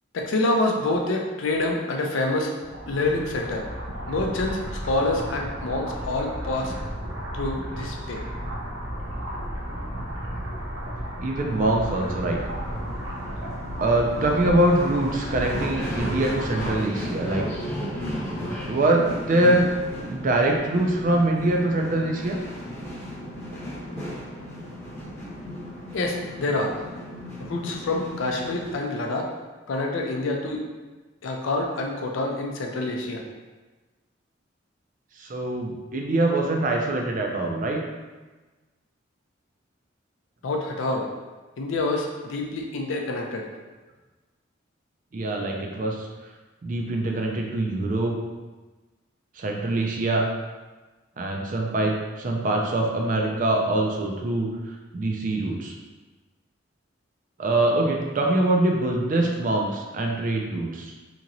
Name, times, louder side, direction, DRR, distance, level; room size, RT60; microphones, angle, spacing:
voice 1, 0.1-2.5 2.9-3.6 4.1-6.7 7.3-8.2 25.9-26.7 27.5-29.3 29.7-30.6 31.2-33.2 40.4-41.1 41.6-43.5, left 2 dB, 85° left, 1 dB, 0.5 m, -27 dB
sound 1, 2.6-16.8, equal, 90° right, 0.7 m, -33 dB
voice 2, 11.2-12.4 13.8-17.5 18.7-19.7 20.1-22.4 35.2-37.8 45.1-46.1 46.6-48.1 49.4-50.3 51.2-54.5 54.9-55.7 57.4-60.9, right 1 dB, 45° right, 1 dB, 0.4 m, -24 dB
sound 2, 11.5-28.8, equal, 15° left, 0.7 m, -35 dB
2.9 x 2.8 x 2.6 m, 1.2 s
head